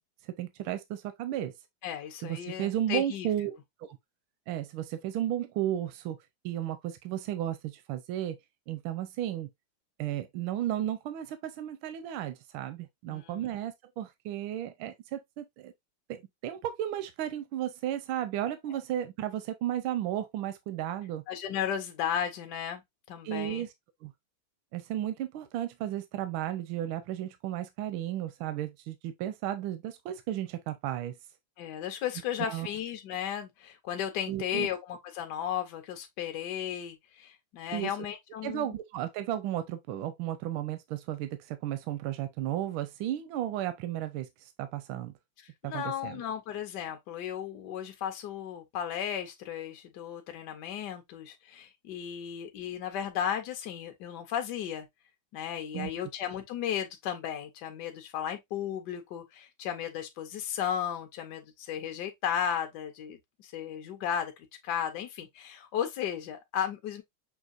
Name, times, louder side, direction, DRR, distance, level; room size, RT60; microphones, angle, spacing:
voice 1, 0.2-1.5 2.2-3.5 3.8-4.0 4.5-6.2 6.4-8.4 8.7-9.5 10.0-15.7 16.1-21.2 23.2-23.7 24.0-24.1 24.7-31.2 32.4-32.7 34.3-34.7 37.7-37.9 38.4-45.1 45.6-46.2 55.7-56.1, right 12 dB, 85° right, 1.4 m, -34 dB
voice 2, 1.8-3.3 13.1-13.5 18.7-18.8 21.3-22.8 23.1-23.7 31.6-38.7 45.4-54.9 55.3-67.0, left 9 dB, 70° left, 1.2 m, -35 dB
6.2 x 2.8 x 2.5 m
omnidirectional pair, 2.2 m